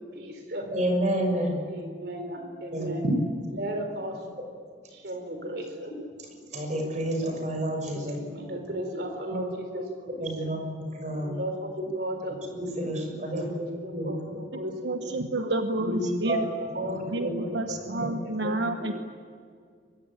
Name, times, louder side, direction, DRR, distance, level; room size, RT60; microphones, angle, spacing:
voice 1, 0.1-0.7 1.7-3.1 3.5-4.2 4.9-5.9 7.9-9.8 10.4-10.5 11.2-12.4 13.2-15.3 16.2-16.5 16.7-17.0 17.3-18.8, right 1 dB, 60° right, 5 dB, 3.7 m, -36 dB
voice 2, 0.7-1.6 2.7-2.9 5.4-5.5 5.8-5.9 6.2-8.2 9.3-9.4 10.2-11.4 12.6-14.2 15.8-16.4 16.6-17.0 17.2-17.4, right 1 dB, 40° right, 4 dB, 6.4 m, -30 dB
voice 3, 14.5-16.5 17.1-18.9, right 2 dB, 75° right, 6 dB, 1.2 m, -30 dB
23.5 x 23.5 x 9.0 m, 2.1 s
head